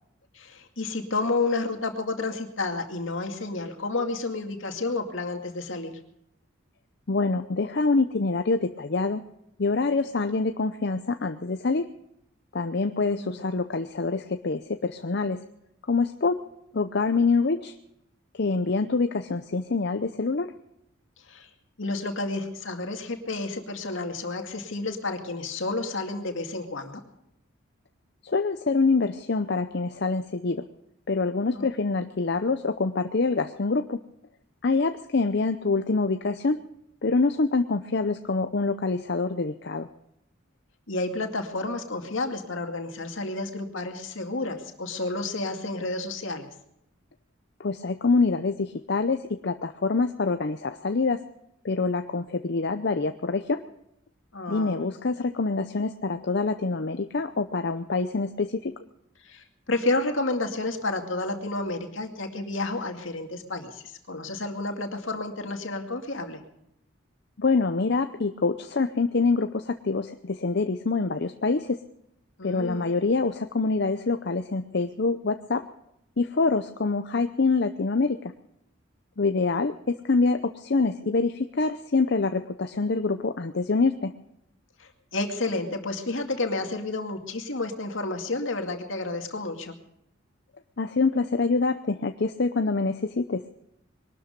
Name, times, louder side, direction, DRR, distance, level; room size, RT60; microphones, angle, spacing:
voice 1, 0.3-6.0 13.0-13.5 21.3-21.5 21.8-27.0 31.5-31.7 40.9-46.5 54.3-54.8 59.2-66.4 72.4-72.9 84.8-89.7, left 2 dB, 75° left, 4 dB, 2.3 m, -31 dB
voice 2, 7.1-9.2 9.6-11.9 12.5-15.4 15.9-16.4 16.7-17.8 18.3-20.5 28.2-30.6 31.1-34.0 34.6-36.6 37.0-39.9 47.6-51.2 51.6-53.6 54.5-58.7 67.4-71.8 72.4-75.6 76.2-78.2 79.2-84.1 90.8-93.4, left 3 dB, 55° left, 8 dB, 0.7 m, -25 dB
22.0 x 12.5 x 5.2 m, 0.80 s
head